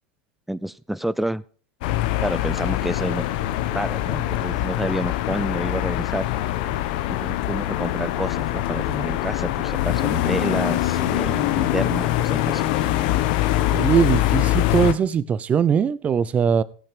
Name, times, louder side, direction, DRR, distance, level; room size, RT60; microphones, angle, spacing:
voice 1, 0.5-1.4 2.2-3.3 3.7-6.2 7.2-12.6, right 1 dB, 5° right, 18 dB, 0.4 m, -29 dB
sound 1, 1.8-14.9, left 14 dB, 70° left, 1.1 m, -23 dB
Bowed string instrument, 11.0-15.1, left 15 dB, 45° left, 0.5 m, -32 dB
voice 2, 13.7-16.6, right 7 dB, 30° right, 17 dB, 0.8 m, -21 dB
16.5 x 5.8 x 5.2 m, 0.43 s
supercardioid pair, 115°, 5 cm